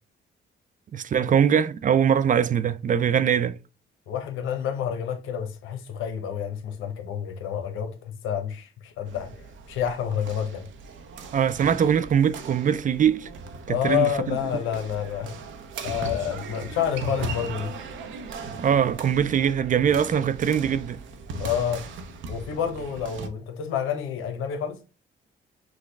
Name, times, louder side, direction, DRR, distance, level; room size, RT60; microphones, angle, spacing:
voice 1, 0.9-3.6 11.3-13.3 13.7-14.4 18.6-21.0, right 8 dB, 40° right, 0.4 m, -22 dB
voice 2, 4.1-9.3 9.7-10.7 13.7-15.4 15.8-17.8 21.4-21.8 22.3-24.8, left 9 dB, 85° left, 0.9 m, -29 dB
sound 1, 9.1-23.3, right 3 dB, 75° right, 0.9 m, -38 dB
6.2 x 2.2 x 3.2 m
cardioid pair, 90°, 20 cm